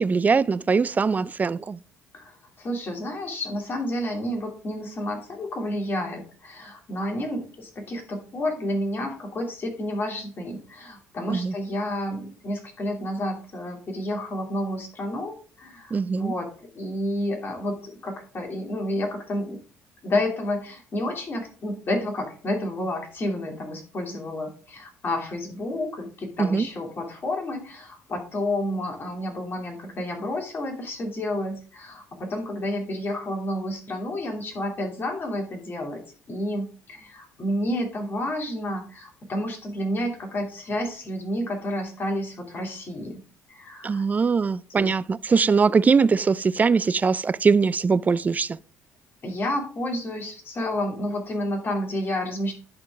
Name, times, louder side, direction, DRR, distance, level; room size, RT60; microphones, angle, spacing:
voice 1, 0.0-1.8 11.3-11.5 15.9-16.3 26.4-26.7 43.8-48.5, right 5 dB, 30° right, 0.4 m, -21 dB
voice 2, 2.1-16.5 16.7-19.6 20.0-36.0 36.3-43.2 43.5-44.0 44.7-44.9 49.2-52.5, left 1 dB, 40° left, 2.9 m, -30 dB
11.0 x 4.5 x 3.6 m
supercardioid pair, 75°, 6 cm